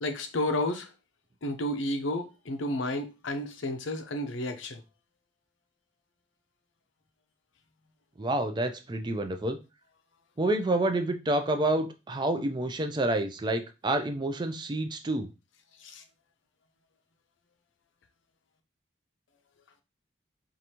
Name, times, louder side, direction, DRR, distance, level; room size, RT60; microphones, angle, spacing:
voice 1, 0.0-0.9 1.4-4.8 15.8-16.0, left 1 dB, 80° left, 0.6 m, -31 dB
voice 2, 8.2-9.6 10.4-15.3, right 1 dB, 25° right, 0.4 m, -28 dB
4.7 x 2.6 x 2.8 m
head